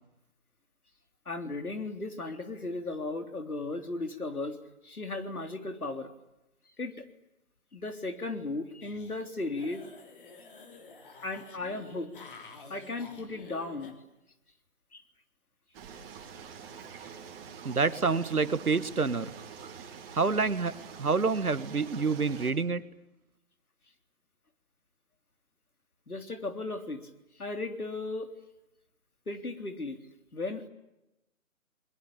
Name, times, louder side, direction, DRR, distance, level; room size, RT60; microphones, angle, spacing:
voice 1, 1.3-4.6 4.8-6.1 6.8-7.0 7.7-9.9 11.2-12.1 12.7-14.0 14.9-15.0 17.0-17.1 26.1-27.1 27.4-28.3 29.3-30.0 30.3-30.7, left 2 dB, 85° left, 7 dB, 3.6 m, -36 dB
sound 1, 8.8-9.2 9.5-13.9, left 4 dB, 35° left, 3.9 m, -50 dB
sound 2, 15.7-22.5, right 6 dB, 15° right, 3.1 m, -46 dB
voice 2, 17.7-19.3 20.1-20.7 21.0-22.8, right 4 dB, 85° right, 14 dB, 1.9 m, -27 dB
29.5 x 21.5 x 8.7 m, 0.92 s
figure-of-eight pair, 155°, 43 cm